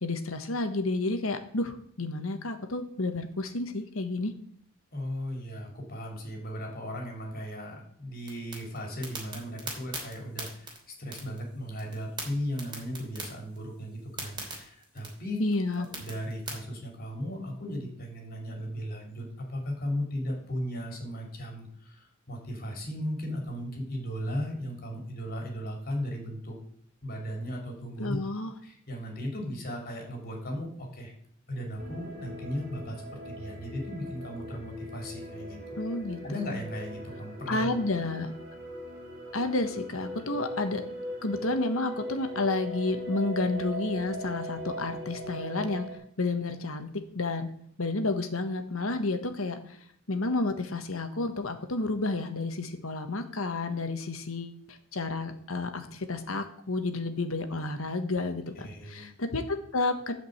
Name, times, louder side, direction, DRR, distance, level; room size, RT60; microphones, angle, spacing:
voice 1, 0.0-4.3 15.4-15.9 28.0-28.5 35.8-36.4 37.5-38.3 39.3-40.8 41.2-45.9 46.2-46.9 47.1-47.5 47.8-49.8 50.1-60.1, left 2 dB, 75° left, 7 dB, 1.4 m, -31 dB
voice 2, 4.9-15.4 15.8-26.6 27.0-28.2 28.6-31.1 31.5-35.8 36.2-38.1 58.6-59.1, equal, 45° left, 1 dB, 3.3 m, -36 dB
sound 1, 8.2-16.5, right 3 dB, 20° right, 3.2 m, -42 dB
sound 2, 31.8-46.0, equal, 40° right, 3.1 m, -40 dB
12.0 x 5.2 x 8.0 m, 0.64 s
head